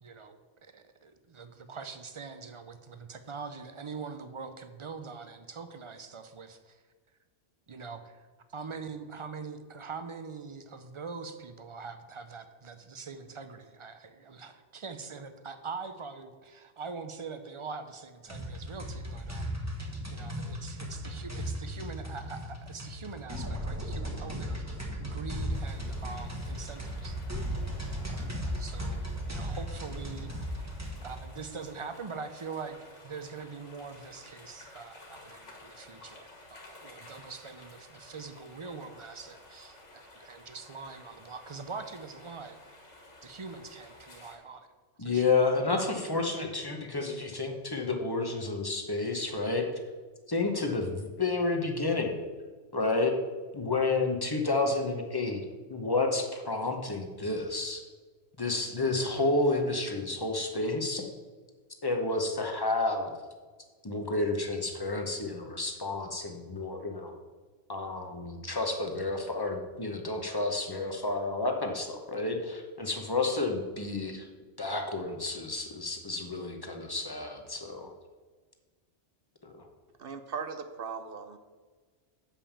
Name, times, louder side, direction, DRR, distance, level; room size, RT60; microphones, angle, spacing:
voice 1, 0.0-6.8 7.7-19.5 20.1-24.6 25.0-27.2 28.6-32.8 33.0-42.6 43.2-44.7 45.0-45.2, right 5 dB, 35° right, 8 dB, 0.5 m, -43 dB
sound 1, 18.3-31.2, equal, 15° right, 1.1 m, -36 dB
sound 2, 25.5-44.3, left 2 dB, 85° left, 2.0 m, -53 dB
voice 2, 45.0-49.6 50.3-52.1 52.7-53.1 53.5-57.8 58.4-61.0 61.8-63.1 63.8-67.1 67.7-74.3 74.6-77.9 79.4-79.7, left 3 dB, 20° left, 3 dB, 0.9 m, -30 dB
voice 3, 80.0-81.4, right 6 dB, 55° right, 8 dB, 0.8 m, -38 dB
7.4 x 5.3 x 7.2 m, 1.4 s
omnidirectional pair, 1.2 m